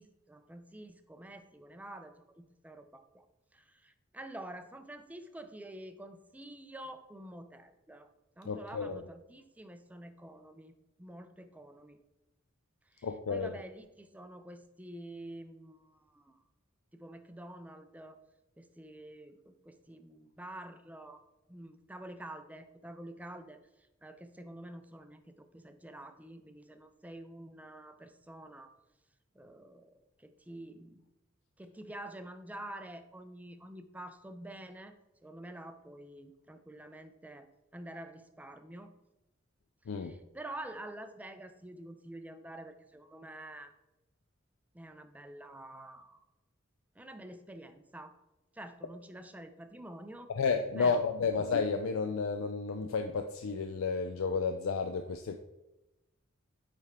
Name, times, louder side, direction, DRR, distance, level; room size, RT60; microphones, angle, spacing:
voice 1, 0.0-3.3 3.5-8.1 8.4-12.0 12.9-16.4 16.9-18.2 18.6-21.2 21.5-28.7 29.3-31.0 31.6-34.9 35.2-38.9 39.8-43.7 44.7-46.2 47.0-48.2 48.5-50.3 50.8-51.0 51.3-51.4, right 1 dB, 10° right, 8 dB, 0.4 m, -48 dB
voice 2, 8.5-9.0 13.0-13.5 39.9-40.2 50.3-55.4, left 5 dB, 75° left, 6 dB, 0.4 m, -32 dB
8.8 x 3.5 x 3.5 m, 0.97 s
head